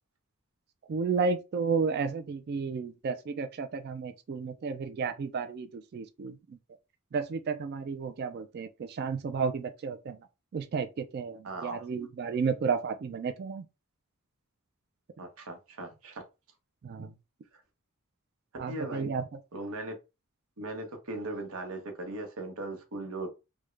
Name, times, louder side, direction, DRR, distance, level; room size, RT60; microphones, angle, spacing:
voice 1, 0.9-6.6 7.1-10.2 10.5-13.7 16.8-17.1 18.6-19.3, right 5 dB, 50° right, 0.3 m, -32 dB
voice 2, 11.4-11.8 15.2-16.2 18.7-19.1 19.5-19.9 20.6-23.3, right 2 dB, 85° right, 0.9 m, -38 dB
3.5 x 2.1 x 3.1 m
head